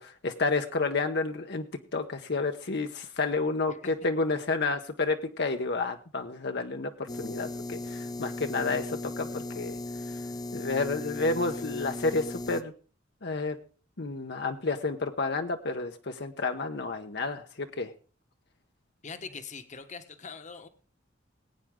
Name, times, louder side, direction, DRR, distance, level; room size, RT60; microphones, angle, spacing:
voice 1, 0.0-1.6 1.9-9.8 10.1-10.2 10.5-12.7 13.2-13.6 14.0-17.9, left 3 dB, 60° left, 5 dB, 0.9 m, -30 dB
sound 1, 7.1-12.6, left 2 dB, 20° left, 0.5 m, -37 dB
voice 2, 19.0-20.7, left 5 dB, 40° left, 9 dB, 1.2 m, -42 dB
20.5 x 9.1 x 3.7 m, 0.38 s
head